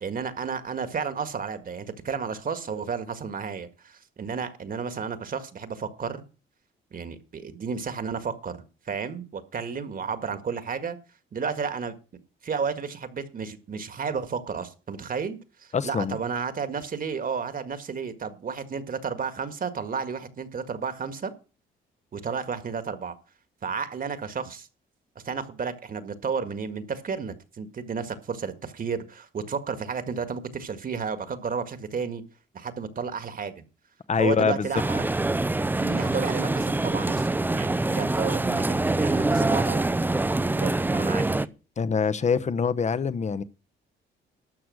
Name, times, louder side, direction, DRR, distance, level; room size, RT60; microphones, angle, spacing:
voice 1, 0.0-6.2 6.9-11.0 11.3-11.9 12.4-21.3 22.1-23.1 23.6-24.7 25.2-32.2 32.5-33.5 34.2-35.0 35.8-39.9 40.5-41.5, right 6 dB, 45° right, 1.8 m, -32 dB
voice 2, 15.7-16.2 34.1-34.7 41.8-43.4, left 6 dB, 35° left, 0.9 m, -24 dB
sound 1, 34.7-41.4, right 2 dB, 10° right, 0.5 m, -25 dB
12.5 x 7.0 x 6.4 m
cardioid pair, 90°, 20 cm